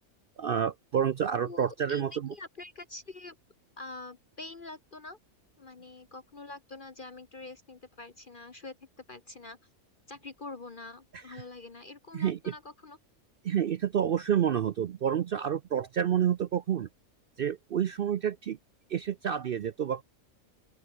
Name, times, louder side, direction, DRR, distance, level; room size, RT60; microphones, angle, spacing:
voice 1, 0.4-2.3 11.1-11.4 12.1-12.5 13.4-16.9 17.4-18.6 18.9-20.0, right 9 dB, 65° right, 0.5 m, -29 dB
voice 2, 1.4-2.0 2.3-3.4 3.8-5.2 5.6-8.8 9.1-9.6 10.1-13.0, left 3 dB, 40° left, 1.3 m, -45 dB
open air
omnidirectional pair, 1.5 m